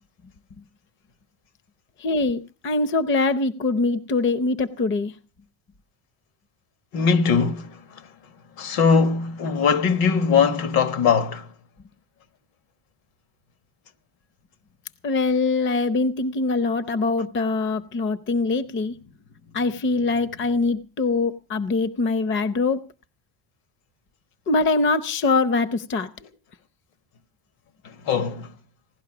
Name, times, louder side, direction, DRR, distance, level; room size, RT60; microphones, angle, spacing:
voice 1, 2.0-5.1 15.0-18.9 19.5-22.8 24.5-26.1, left 3 dB, 30° left, 0.7 m, -23 dB
voice 2, 6.9-7.8 8.6-11.5 28.0-28.5, left 6 dB, 65° left, 1.5 m, -20 dB
17.0 x 12.0 x 6.0 m
cardioid pair, 135°, 39 cm